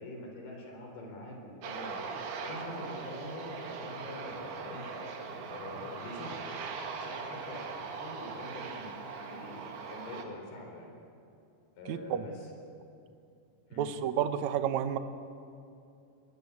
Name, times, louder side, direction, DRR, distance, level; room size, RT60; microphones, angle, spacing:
voice 1, 0.0-2.0 2.4-4.9 5.5-6.5 6.9-9.6 9.9-11.0 11.8-12.5 13.7-13.9, left 1 dB, 70° left, 1 dB, 5.9 m, -45 dB
Aircraft, 1.6-10.2, right 4 dB, 70° right, 3.8 m, -40 dB
voice 2, 11.9-12.2 13.8-15.0, right 9 dB, 90° right, 9 dB, 1.6 m, -30 dB
21.5 x 21.0 x 8.5 m, 2.6 s
omnidirectional pair, 4.8 m